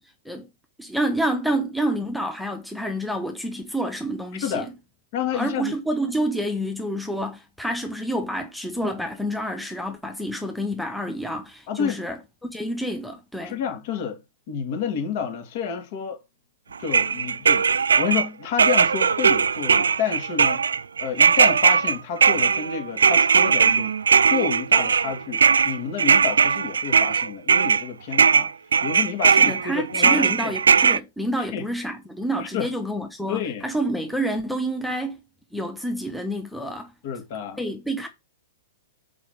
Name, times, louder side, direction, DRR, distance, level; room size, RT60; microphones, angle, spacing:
voice 1, 0.8-4.7 5.3-13.6 29.3-35.2 35.5-36.9 37.6-38.1, right 1 dB, ahead, 1.1 m, -28 dB
voice 2, 4.3-4.7 5.1-5.8 11.7-12.0 13.4-14.2 14.5-16.2 16.8-20.6 21.0-23.9 24.3-28.5 28.8-30.5 31.4-31.6 32.5-32.7 33.3-33.7 37.0-37.6, left 7 dB, 50° left, 2.3 m, -29 dB
sound 1, 16.9-18.3 18.6-27.8 28.1-31.0, right 6 dB, 75° right, 0.3 m, -19 dB
6.1 x 4.8 x 5.0 m
figure-of-eight pair, 110°, 0 cm